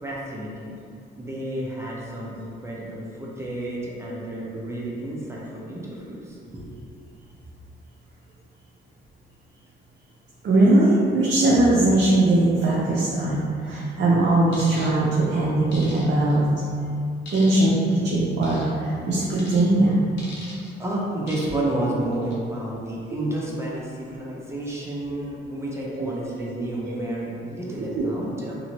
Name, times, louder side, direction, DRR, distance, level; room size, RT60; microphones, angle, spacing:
voice 1, 0.0-0.8 1.2-6.8 20.8-28.6, right 1 dB, 15° right, -5 dB, 0.6 m, -31 dB
voice 2, 10.4-16.5 17.3-19.9 23.1-23.2 26.0-26.1 26.6-27.0 27.9-28.1, right 2 dB, 60° right, -6 dB, 0.6 m, -20 dB
sound 1, 14.5-14.9 15.7-16.4 17.3-17.8 18.4-18.7 19.4-19.6 20.2-20.7 21.3-21.7 22.1-22.3, left 1 dB, 65° left, 0.9 m, -41 dB
2.8 x 2.6 x 2.9 m, 2.4 s
cardioid pair, 90°, 20 cm